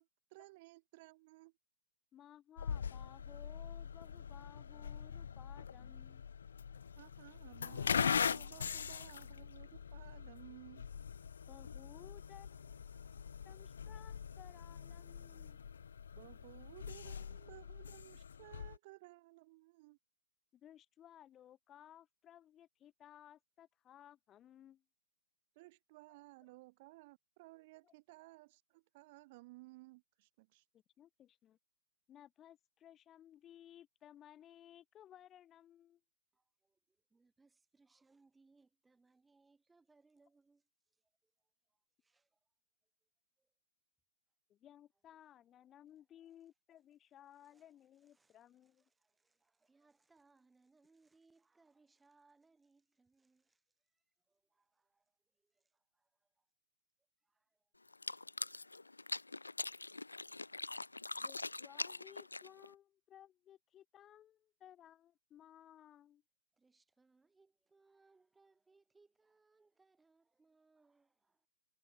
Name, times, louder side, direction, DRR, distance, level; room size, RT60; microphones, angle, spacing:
voice 1, 0.0-1.5 6.9-10.8 16.1-20.0 25.5-30.6, right 22 dB, 40° right, 3.5 m, -58 dB
voice 2, 2.1-6.2 8.6-8.8 11.5-12.8 13.1-15.6 20.5-24.8 27.8-27.9 30.7-31.6 32.1-36.0 44.5-48.8 61.2-66.2, left 11 dB, 20° left, 1.9 m, -59 dB
sound 1, 2.6-18.8, left 7 dB, 70° left, 0.4 m, -42 dB
voice 3, 36.3-42.5 43.4-43.5 45.7-45.9 46.2-46.5 47.4-56.5 57.2-58.3 66.5-71.5, right 3 dB, 10° right, 7.9 m, -73 dB
sound 2, 57.9-62.7, left 3 dB, 90° left, 0.8 m, -43 dB
figure-of-eight pair, 120°, 0 cm